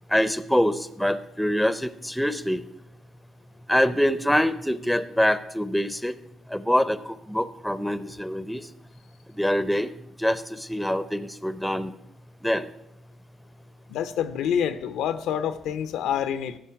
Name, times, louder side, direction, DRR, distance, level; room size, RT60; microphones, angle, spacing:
voice 1, 0.1-2.6 3.7-6.1 6.5-8.6 9.4-9.9 10.2-11.9 12.4-12.7, equal, ahead, 14 dB, 0.5 m, -24 dB
voice 2, 13.9-16.6, left 9 dB, 90° left, 11 dB, 0.6 m, -27 dB
13.5 x 5.4 x 5.8 m, 0.82 s
cardioid pair, 90°, 0 cm